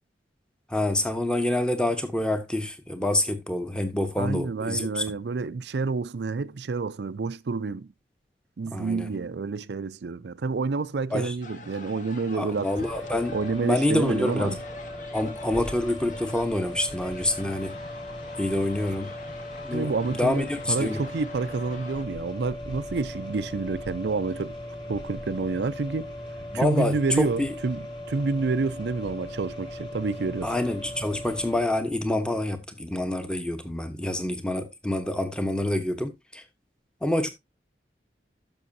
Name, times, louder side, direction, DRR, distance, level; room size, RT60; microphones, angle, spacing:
voice 1, 0.7-5.0 8.7-9.1 11.1-11.3 12.3-14.5 15.1-17.8 18.4-19.1 19.6-21.0 26.5-27.5 30.4-36.4 37.0-37.3, left 1 dB, 5° left, 1.0 m, -27 dB
voice 2, 4.2-7.9 8.6-12.7 13.3-14.6 19.7-24.6 24.9-26.1 26.5-30.5, right 4 dB, 75° right, 0.5 m, -29 dB
sound 1, 11.4-22.0, left 3 dB, 45° left, 1.3 m, -45 dB
sound 2, 12.8-31.6, left 1 dB, 30° left, 2.7 m, -38 dB
12.5 x 6.2 x 2.7 m
head